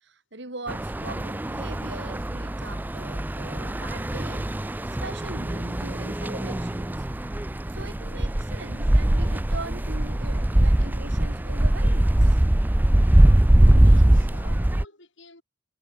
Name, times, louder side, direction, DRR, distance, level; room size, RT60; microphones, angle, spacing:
voice 1, 0.0-4.7 5.0-7.1 7.7-12.4, right 2 dB, 55° right, 2.6 m, -41 dB
sound 1, 0.7-14.8, right 1 dB, 10° right, 0.4 m, -22 dB
voice 2, 13.8-15.4, left 3 dB, 65° left, 7.3 m, -50 dB
head